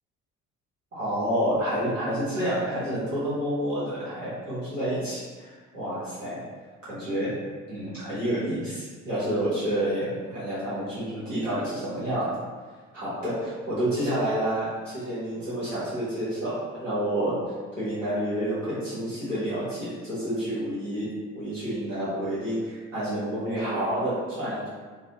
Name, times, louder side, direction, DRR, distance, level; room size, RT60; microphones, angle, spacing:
voice 1, 0.9-6.4 6.8-7.3 7.7-12.4 12.9-17.4 17.8-21.1 21.3-24.7, right 1 dB, 90° right, -12 dB, 0.9 m, -29 dB
2.4 x 2.1 x 2.8 m, 1.5 s
figure-of-eight pair, 50°, 37 cm